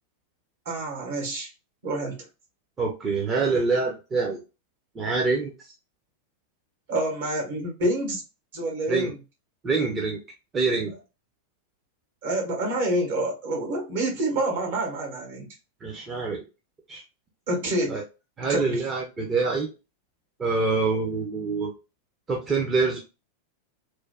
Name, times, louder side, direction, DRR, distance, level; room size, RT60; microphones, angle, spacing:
voice 1, 0.6-1.5 1.8-2.2 6.9-8.2 8.5-9.1 12.2-15.5 17.5-18.0 18.5-18.8, right 1 dB, 55° right, 1.3 m, -27 dB
voice 2, 2.8-4.4 4.9-5.5 8.9-9.1 9.6-10.2 10.5-10.9 15.8-16.4 16.9-17.0 17.9-18.0 18.4-19.7 20.4-21.7 22.3-23.0, right 4 dB, 20° right, 0.7 m, -25 dB
3.2 x 2.2 x 2.3 m
figure-of-eight pair, 90°, 0 cm